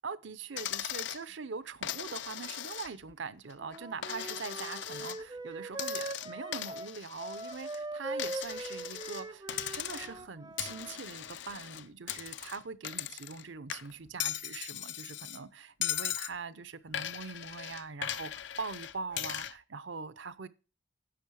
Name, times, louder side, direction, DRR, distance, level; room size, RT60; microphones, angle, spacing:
voice 1, 0.0-9.5 9.7-20.5, right 4 dB, 70° right, 0.7 m, -42 dB
Coin (dropping), 0.6-1.2 1.8-3.1 3.5-5.2 5.7-7.8 8.2-9.2 9.5-10.2 10.6-13.4 13.7-15.4 15.8-16.3 16.9-19.5, left 11 dB, 65° left, 0.5 m, -38 dB
Wind instrument woodwind instrument, 3.6-11.0, right 2 dB, 20° right, 0.5 m, -41 dB
10.5 x 6.4 x 6.4 m
head